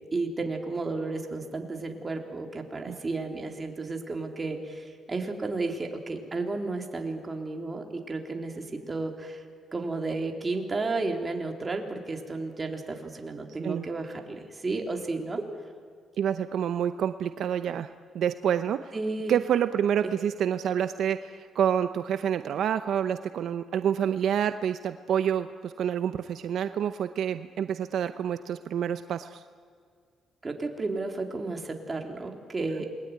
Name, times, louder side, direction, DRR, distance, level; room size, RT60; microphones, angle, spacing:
voice 1, 0.1-9.4 9.7-15.4 18.9-19.4 30.4-32.9, right 3 dB, 25° right, 3 dB, 3.7 m, -32 dB
voice 2, 16.2-17.9 18.1-18.9 19.3-29.4, right 9 dB, 70° right, 10 dB, 0.8 m, -28 dB
28.0 x 21.0 x 9.6 m, 2.1 s
cardioid pair, 90°, 0 cm